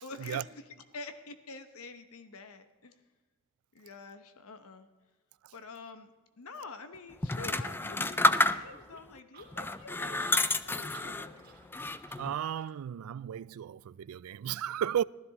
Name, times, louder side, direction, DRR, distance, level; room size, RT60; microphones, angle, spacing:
voice 1, 0.0-2.9 3.7-4.9 5.5-6.1 6.4-11.8, left 3 dB, 85° left, 0.9 m, -47 dB
sound 1, 7.2-9.0 9.5-11.3 11.7-12.3, left 2 dB, 10° left, 0.4 m, -29 dB
sound 2, 8.2-12.8, right 5 dB, 45° right, 1.9 m, -55 dB
voice 2, 12.2-15.0, right 10 dB, 80° right, 0.3 m, -34 dB
15.5 x 13.0 x 4.0 m
head